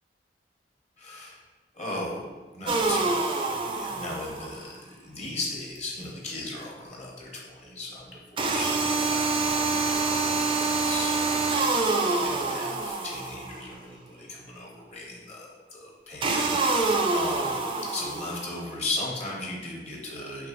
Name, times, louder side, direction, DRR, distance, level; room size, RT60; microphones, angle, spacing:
voice 1, 1.0-1.4 1.7-9.8 10.1-11.4 11.8-17.6 17.9-20.5, left 2 dB, 40° left, -2 dB, 0.9 m, -37 dB
sound 1, 2.7-4.6 8.4-13.6 16.2-18.6, right 3 dB, 30° right, 0.3 m, -26 dB
4.9 x 3.1 x 2.5 m, 1.3 s
head